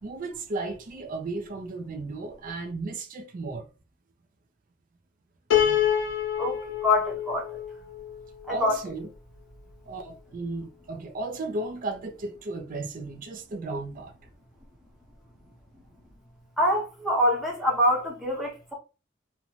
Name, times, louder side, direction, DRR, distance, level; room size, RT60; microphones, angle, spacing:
voice 1, 0.0-3.7 8.5-9.1 9.9-14.1, right 3 dB, 45° right, 0.4 m, -34 dB
Piano, 5.5-8.7, left 10 dB, 65° left, 0.6 m, -27 dB
voice 2, 6.4-7.6 8.5-8.8 16.6-18.7, left 1 dB, ahead, 0.9 m, -25 dB
2.5 x 2.1 x 3.0 m
head